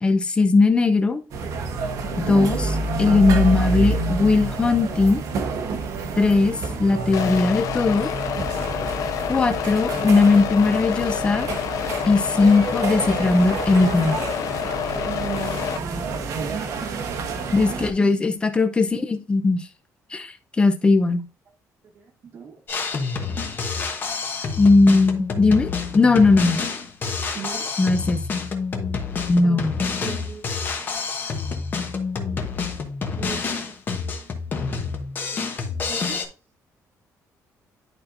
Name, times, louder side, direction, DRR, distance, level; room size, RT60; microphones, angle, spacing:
voice 1, 0.0-1.2 2.2-5.2 6.2-8.1 9.3-11.5 12.1-14.2 17.5-19.7 20.1-21.2 24.6-26.6 27.8-28.2 29.3-29.7, left 3 dB, 15° left, 0.6 m, -19 dB
sound 1, 1.3-17.9, right 3 dB, 60° right, 1.0 m, -28 dB
sound 2, 7.1-15.8, left 10 dB, 60° left, 0.4 m, -28 dB
voice 2, 15.0-17.1 17.7-18.2 21.9-22.1 22.3-22.6 27.3-27.7 29.4-29.6 30.0-31.3 33.2-34.7 35.1-36.2, right 6 dB, 40° right, 1.2 m, -38 dB
Drum kit, 22.7-36.2, left 5 dB, 30° left, 1.1 m, -28 dB
11.0 x 4.3 x 2.6 m
cardioid pair, 180°, 6 cm